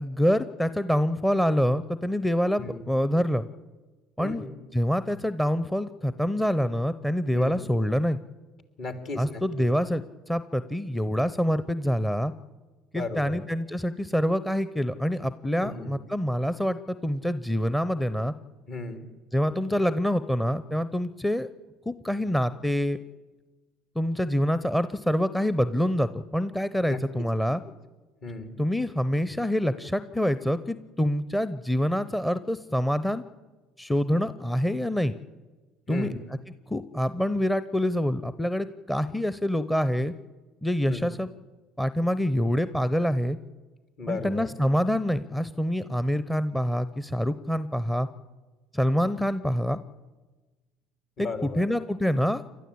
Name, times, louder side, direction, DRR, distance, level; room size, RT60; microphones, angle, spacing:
voice 1, 0.0-3.4 4.2-4.5 4.7-8.2 9.2-12.3 12.9-18.3 19.3-21.5 21.9-23.0 23.9-27.6 28.6-33.2 33.8-35.1 35.9-36.1 36.7-40.1 40.6-41.3 41.8-43.4 44.1-48.1 48.7-49.8 51.2-52.4, equal, 5° left, 14 dB, 0.8 m, -26 dB
voice 2, 4.2-4.6 7.3-7.7 8.8-9.7 12.9-13.4 15.6-16.0 18.7-19.0 26.9-27.4 28.2-28.6 35.9-36.2 40.9-41.1 44.0-44.5 51.2-51.7, left 2 dB, 50° left, 8 dB, 3.1 m, -35 dB
29.5 x 12.5 x 8.6 m, 1.3 s
figure-of-eight pair, 60°, 0 cm